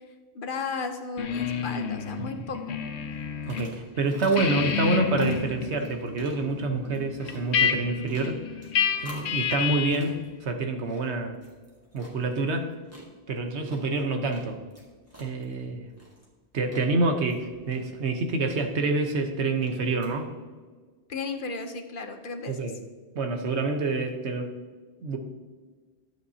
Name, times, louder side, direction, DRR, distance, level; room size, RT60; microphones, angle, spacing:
voice 1, 0.3-2.6 21.1-22.6, left 4 dB, 55° left, 6 dB, 0.9 m, -34 dB
sound 1, 1.2-3.7 4.0-10.1, left 7 dB, 85° left, 1.0 m, -30 dB
sound 2, 3.0-20.1, equal, 15° right, 1.9 m, -50 dB
voice 2, 3.5-8.4 9.0-11.4 11.9-12.7 13.3-14.6 15.2-15.9 16.5-20.3 22.5-22.8 23.1-24.5 25.0-25.2, right 3 dB, 85° right, 5 dB, 1.3 m, -27 dB
12.0 x 7.8 x 2.8 m, 1.4 s
omnidirectional pair, 1.1 m